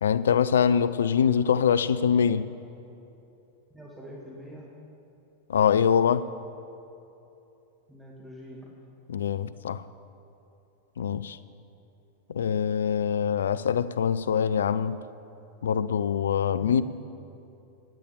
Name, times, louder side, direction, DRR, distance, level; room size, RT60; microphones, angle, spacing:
voice 1, 0.0-2.4 5.5-6.3 9.1-9.8 11.0-11.4 12.3-15.0 15.6-16.8, left 7 dB, 65° left, 15 dB, 0.4 m, -24 dB
voice 2, 3.7-4.7 7.9-8.7, equal, 5° right, -4 dB, 2.2 m, -44 dB
15.5 x 10.0 x 7.0 m, 2.9 s
figure-of-eight pair, 90°, 0 cm